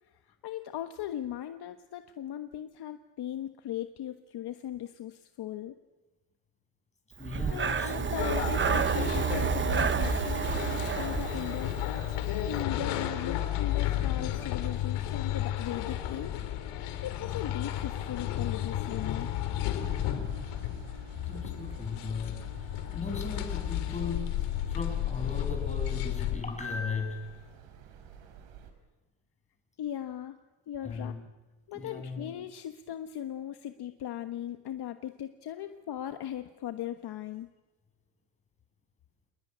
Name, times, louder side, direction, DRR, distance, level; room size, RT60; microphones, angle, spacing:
voice 1, 0.1-5.7 7.5-11.8 12.5-16.4 17.0-19.3 29.8-30.4 30.7-31.1 31.7-37.5, left 11 dB, 50° left, 8 dB, 1.4 m, -38 dB
voice 2, 7.2-8.2 21.3-27.3 30.8-31.3 31.7-32.3, left 4 dB, 15° left, 2 dB, 7.3 m, -37 dB
Breathing, 7.2-12.2, right 7 dB, 25° right, 1.0 m, -30 dB
sound 1, 8.1-26.4, left 11 dB, 80° left, 3.6 m, -33 dB
sound 2, 19.8-28.7, right 7 dB, 80° right, 4.8 m, -51 dB
27.5 x 20.0 x 9.8 m, 1.1 s
cardioid pair, 135°, 50 cm